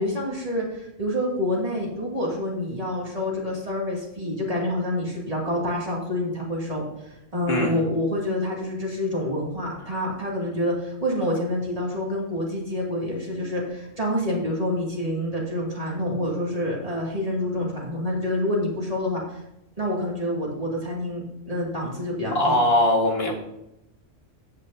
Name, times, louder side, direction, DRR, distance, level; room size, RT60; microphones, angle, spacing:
voice 1, 0.0-6.8 7.3-19.4 19.8-22.6, left 1 dB, 30° right, -4 dB, 2.5 m, -27 dB
voice 2, 7.5-7.8 22.3-23.3, left 1 dB, 55° left, 0 dB, 2.0 m, -21 dB
14.0 x 8.3 x 2.7 m, 0.84 s
omnidirectional pair, 1.3 m